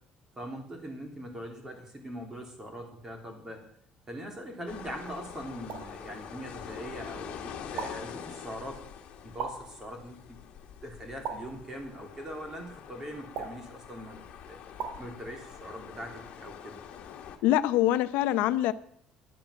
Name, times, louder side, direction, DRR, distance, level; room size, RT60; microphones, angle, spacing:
voice 1, 0.4-3.6 4.1-8.8 9.2-10.4 10.8-14.6 15.0-16.8, equal, 20° right, 3 dB, 3.0 m, -42 dB
sound 1, 4.7-17.4, left 8 dB, 55° left, 1.7 m, -45 dB
mouth pops - wet - room, 5.7-6.0 7.8-8.2 9.4-9.8 11.2-11.7 13.4-13.8 14.8-15.1, right 6 dB, 65° right, 1.9 m, -37 dB
voice 2, 17.4-18.7, left 13 dB, 90° left, 13 dB, 0.7 m, -24 dB
10.5 x 9.0 x 8.2 m, 0.64 s
cardioid pair, 160°, 3 cm